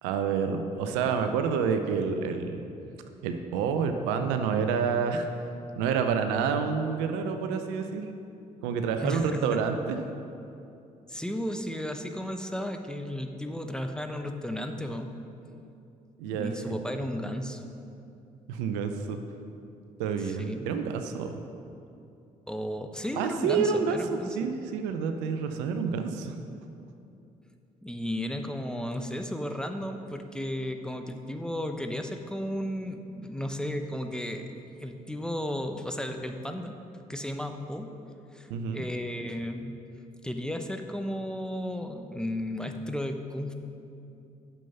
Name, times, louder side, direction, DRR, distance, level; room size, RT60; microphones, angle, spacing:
voice 1, 0.0-2.6 3.2-5.3 5.8-8.0 8.6-10.0 16.2-16.5 18.5-19.2 20.0-21.4 23.2-24.0 24.4-26.3 38.5-38.8, right 6 dB, 75° right, 7 dB, 0.6 m, -28 dB
voice 2, 8.9-9.6 11.1-15.1 16.3-17.7 20.2-20.7 22.5-24.4 27.8-34.5 34.8-36.8 37.1-37.9 38.3-39.7 40.2-43.5, left 1 dB, 5° left, 5 dB, 0.9 m, -34 dB
9.2 x 7.0 x 5.5 m, 2.7 s
hypercardioid pair, 45°, 19 cm